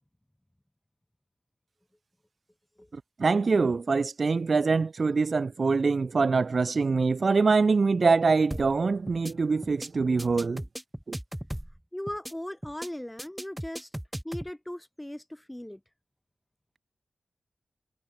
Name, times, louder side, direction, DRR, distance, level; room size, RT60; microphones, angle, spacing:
voice 1, 3.2-10.6 11.1-11.2, right 4 dB, 60° right, 0.3 m, -24 dB
sound 1, 8.5-8.8 9.1-9.3 9.6-9.9 10.2-11.8 12.1-12.3 12.6-12.9 13.2-14.5, equal, 5° right, 1.5 m, -37 dB
voice 2, 11.9-13.9 14.2-15.8, left 1 dB, 10° left, 1.1 m, -38 dB
cardioid pair, 50°, 0 cm